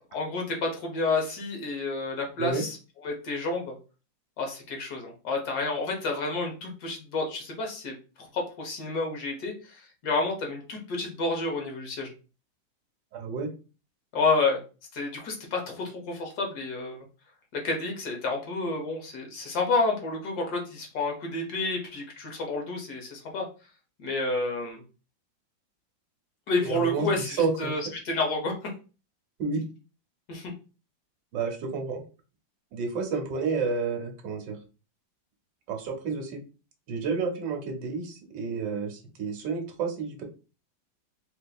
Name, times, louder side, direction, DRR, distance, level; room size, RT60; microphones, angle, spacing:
voice 1, 0.1-2.8 3.0-3.8 4.4-12.1 14.1-14.6 14.9-17.0 17.5-23.5 24.0-24.8 26.5-28.7 30.3-30.5, left 3 dB, 60° left, 1 dB, 1.4 m, -30 dB
voice 2, 13.1-13.5 26.6-27.1 27.4-27.7 29.4-29.6 31.3-32.0 32.7-34.6 35.7-36.4 36.9-40.2, right 5 dB, 70° right, 4 dB, 1.4 m, -30 dB
4.1 x 2.7 x 2.3 m, 0.33 s
omnidirectional pair, 2.0 m